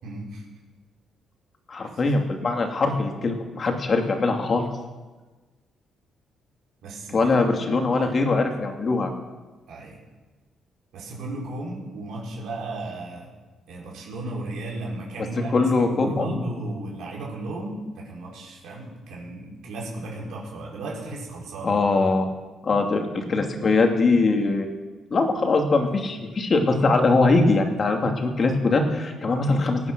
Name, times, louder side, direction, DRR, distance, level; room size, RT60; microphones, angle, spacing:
voice 1, 0.0-0.4 1.8-2.0 6.8-7.4 9.7-10.0 10.9-13.3 13.7-21.8, right 2 dB, 80° right, -4 dB, 4.6 m, -35 dB
voice 2, 1.7-4.6 7.1-9.1 15.5-16.4 21.6-22.3 22.6-24.7 25.1-29.8, left 3 dB, 40° left, 3 dB, 2.6 m, -22 dB
18.5 x 9.4 x 6.2 m, 1.3 s
cardioid pair, 90°, 0 cm